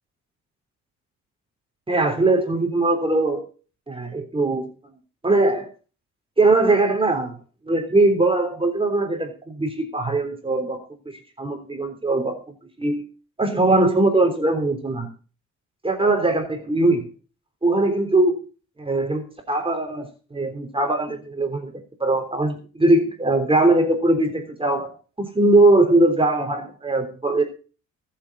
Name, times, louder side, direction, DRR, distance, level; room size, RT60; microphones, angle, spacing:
voice 1, 1.9-3.5 3.9-4.6 5.2-5.7 6.4-7.3 7.7-10.8 11.0-12.4 12.8-13.0 13.4-15.1 15.8-17.0 17.6-18.4 18.8-21.7 22.0-27.4, right 2 dB, 20° right, 5 dB, 3.4 m, -20 dB
22.0 x 7.6 x 4.0 m, 0.36 s
cardioid pair, 90°, 30 cm